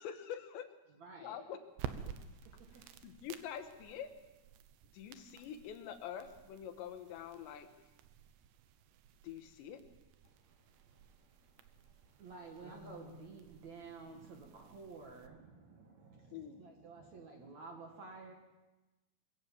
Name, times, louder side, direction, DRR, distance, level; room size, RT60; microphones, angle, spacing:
voice 1, 0.0-0.7 1.2-1.6 2.1-2.2 2.7-4.1 4.9-7.7 9.2-9.8 16.3-16.6, left 9 dB, 90° left, 7 dB, 3.6 m, -46 dB
voice 2, 1.0-1.4 2.5-2.6 12.2-18.3, right 4 dB, 50° right, 2 dB, 2.5 m, -51 dB
sound 1, 1.7-15.3, right 9 dB, 90° right, 3.2 m, -52 dB
voice 3, 10.2-12.3 12.6-13.3, left 5 dB, 35° left, 1 dB, 2.9 m, -60 dB
22.5 x 16.0 x 7.3 m, 1.1 s
omnidirectional pair, 4.9 m